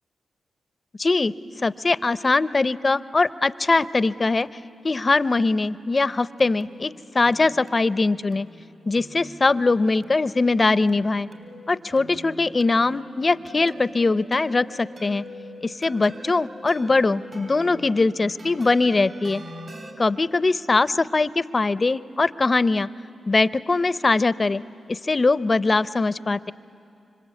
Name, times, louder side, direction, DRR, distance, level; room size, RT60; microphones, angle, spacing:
voice 1, 1.0-1.3 1.6-4.5 4.8-8.5 8.9-11.3 11.7-15.2 15.6-19.4 20.0-22.9 23.3-24.6 24.9-26.5, left 3 dB, 40° left, 17 dB, 0.6 m, -21 dB
sound 1, 5.8-19.9, equal, 50° right, 3.3 m, -43 dB
26.0 x 25.5 x 8.4 m, 2.6 s
supercardioid pair, 50°, 0 cm